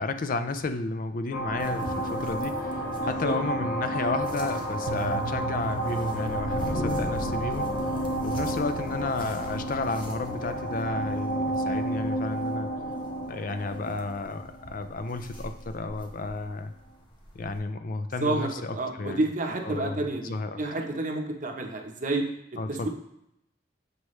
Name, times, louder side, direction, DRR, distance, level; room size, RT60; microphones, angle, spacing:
voice 1, 0.0-7.7 8.2-12.7 13.3-16.7 17.3-19.2 19.6-20.6 22.6-22.9, left 3 dB, 50° left, 9 dB, 0.4 m, -32 dB
sound 1, 1.3-15.5, right 1 dB, 65° left, 1.2 m, -31 dB
sound 2, 1.6-17.6, equal, 25° left, 1.1 m, -48 dB
voice 2, 3.0-3.4 18.2-22.3 22.7-22.9, right 2 dB, 45° right, 3 dB, 0.9 m, -30 dB
sound 3, 4.9-13.0, right 4 dB, 65° right, 0.4 m, -41 dB
8.0 x 4.7 x 3.2 m, 0.81 s
head